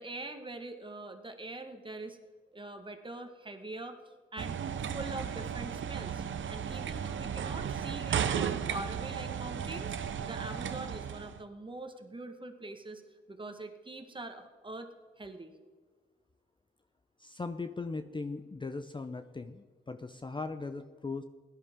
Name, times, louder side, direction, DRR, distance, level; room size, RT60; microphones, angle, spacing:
voice 1, 0.0-2.2 2.5-4.0 4.3-4.6 4.9-6.2 6.5-10.0 10.2-13.0 13.3-14.9 15.2-15.5, right 2 dB, 25° right, 7 dB, 1.6 m, -43 dB
sound 1, 4.4-11.4, right 8 dB, 65° right, 0.8 m, -35 dB
voice 2, 17.2-21.2, left 3 dB, 20° left, 9 dB, 0.7 m, -39 dB
16.5 x 11.5 x 3.7 m, 1.5 s
cardioid pair, 65°, 21 cm